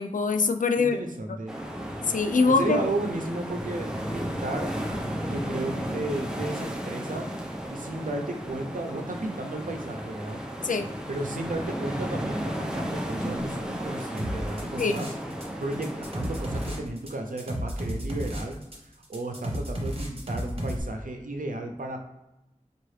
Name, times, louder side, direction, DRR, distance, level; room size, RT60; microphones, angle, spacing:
voice 1, 0.0-0.9 2.1-2.8 10.6-10.9 14.8-15.0, left 4 dB, 70° left, 7 dB, 0.4 m, -23 dB
voice 2, 0.8-1.6 2.5-4.8 5.3-7.3 7.7-10.4 11.1-15.1 15.4-18.6 19.1-22.0, right 2 dB, 75° right, 3 dB, 0.6 m, -34 dB
sound 1, 1.5-16.8, equal, 5° right, 0.7 m, -34 dB
sound 2, 14.2-15.4 15.7-20.8, equal, 45° right, 1.0 m, -33 dB
4.6 x 2.4 x 3.2 m, 0.92 s
wide cardioid pair, 50°, 14 cm